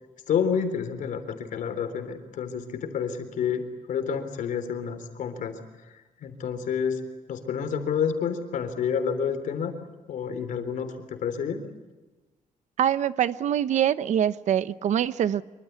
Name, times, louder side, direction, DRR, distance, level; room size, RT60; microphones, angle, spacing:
voice 1, 0.3-5.6 5.8-7.0 7.3-9.7 10.1-11.6, left 7 dB, 75° left, 8 dB, 3.7 m, -29 dB
voice 2, 12.8-15.4, right 10 dB, 65° right, 14 dB, 0.9 m, -24 dB
25.0 x 24.5 x 8.2 m, 1.2 s
wide cardioid pair, 180°, 13 cm